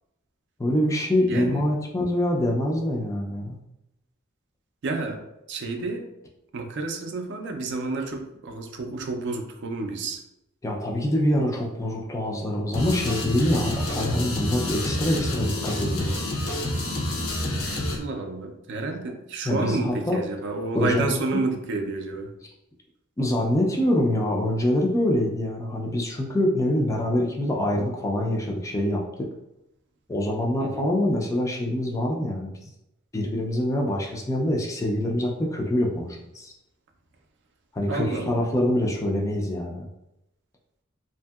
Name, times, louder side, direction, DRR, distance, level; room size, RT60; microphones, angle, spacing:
voice 1, 0.6-3.6 10.6-16.1 19.4-20.2 20.7-21.4 23.2-29.3 30.1-32.7 33.1-36.1 36.3-36.5 37.7-39.9, left 1 dB, 15° left, 0 dB, 0.3 m, -25 dB
voice 2, 1.3-1.7 4.8-5.2 5.5-6.1 6.5-10.2 17.7-22.3 30.6-30.9 37.9-38.5, right 3 dB, 55° right, 4 dB, 0.4 m, -30 dB
sound 1, 12.7-18.0, left 1 dB, 80° left, 0.7 m, -28 dB
2.7 x 2.6 x 2.3 m, 0.87 s
head